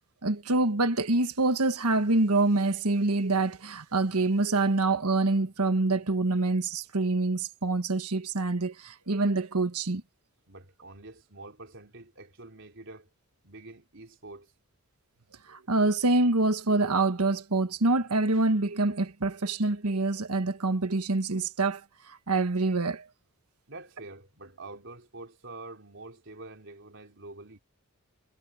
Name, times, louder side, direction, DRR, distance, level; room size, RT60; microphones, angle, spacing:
voice 1, 0.2-10.0 15.5-21.8 22.3-23.0, right 2 dB, 90° right, 1.5 m, -26 dB
voice 2, 10.5-13.1 13.4-14.5 23.7-27.6, right 2 dB, 55° right, 4.1 m, -46 dB
head